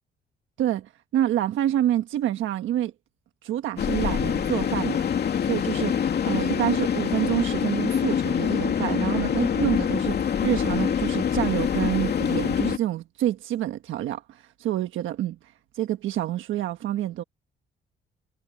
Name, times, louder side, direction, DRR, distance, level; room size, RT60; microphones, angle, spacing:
voice 1, 0.6-2.9 3.4-5.0 5.4-15.4 15.7-17.2, right 12 dB, 85° right, 1.4 m, -27 dB
sound 1, 3.8-12.8, left 8 dB, 55° left, 2.6 m, -25 dB
cardioid pair, 90°, 20 cm